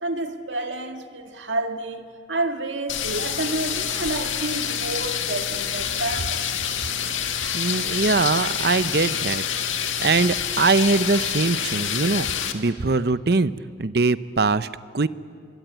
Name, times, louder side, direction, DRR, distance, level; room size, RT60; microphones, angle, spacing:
voice 1, 0.0-6.5, right 2 dB, 75° right, 1.9 m, -29 dB
sound 1, 2.9-12.5, left 8 dB, 90° left, 1.8 m, -27 dB
voice 2, 7.5-9.4 10.0-12.3 12.5-13.5 13.8-14.7 14.9-15.1, right 3 dB, 55° right, 0.7 m, -21 dB
26.0 x 23.5 x 9.2 m
head